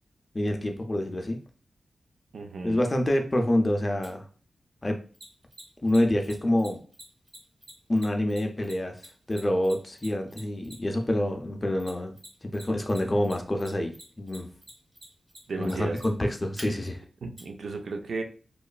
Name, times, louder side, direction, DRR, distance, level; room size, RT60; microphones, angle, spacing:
voice 1, 0.3-1.4 2.6-4.2 4.8-5.0 5.8-6.8 7.9-9.0 9.3-12.2 12.4-14.5 15.6-17.0, left 1 dB, 25° left, 4 dB, 0.4 m, -27 dB
voice 2, 2.3-2.9 15.5-16.0 17.2-18.2, right 3 dB, 80° right, 4 dB, 0.4 m, -34 dB
Mechanisms, 4.0-4.1 5.1-11.0 11.8-12.6 12.9-16.6 17.4-17.5, right 1 dB, 30° right, 0.9 m, -46 dB
3.0 x 2.3 x 2.3 m, 0.40 s
wide cardioid pair, 130°, 0 cm